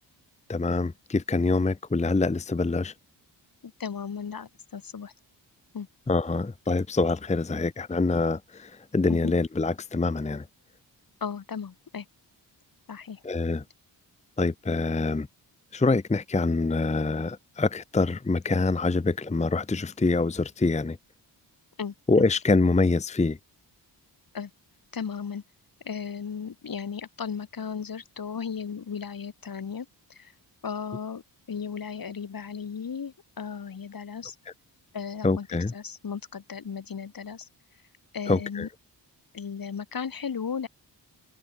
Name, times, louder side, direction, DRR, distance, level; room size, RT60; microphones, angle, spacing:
voice 1, 0.5-2.9 6.1-10.4 13.2-13.6 14.4-15.3 15.7-21.0 22.1-23.4 35.2-35.7 38.3-38.7, left 3 dB, 15° left, 0.8 m, -25 dB
voice 2, 3.6-5.1 5.7-5.9 9.1-9.3 11.2-12.1 12.9-13.2 21.8-22.2 24.3-24.5 24.9-25.4 25.8-30.3 30.6-31.2 31.5-34.4 34.9-37.5 38.1-38.7 39.3-40.7, left 6 dB, 50° left, 1.9 m, -35 dB
cardioid pair, 70°, 43 cm